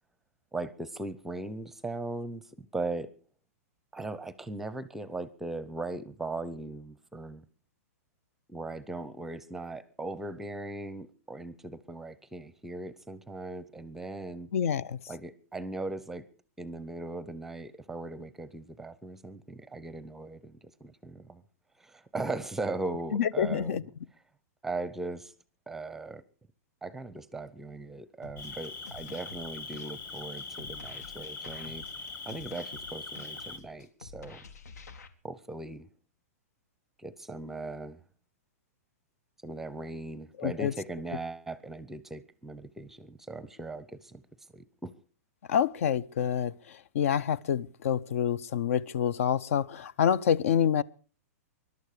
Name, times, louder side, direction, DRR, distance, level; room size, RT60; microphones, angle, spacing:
voice 1, 0.5-3.1 3.9-7.4 8.5-14.5 15.1-16.3 16.6-21.4 21.8-23.8 24.6-25.3 25.7-26.2 26.8-31.8 32.3-34.4 35.2-35.9 37.0-38.0 39.4-44.2 44.5-44.9, right 2 dB, 5° right, 0.7 m, -39 dB
voice 2, 14.5-15.0 23.1-23.8 40.4-40.7 45.5-50.8, left 8 dB, 60° left, 0.6 m, -27 dB
sound 1, 28.2-35.1, left 4 dB, 90° left, 2.0 m, -49 dB
Cricket, 28.4-33.6, left 3 dB, 20° left, 1.1 m, -42 dB
21.5 x 12.0 x 4.9 m
hypercardioid pair, 160°, 9 cm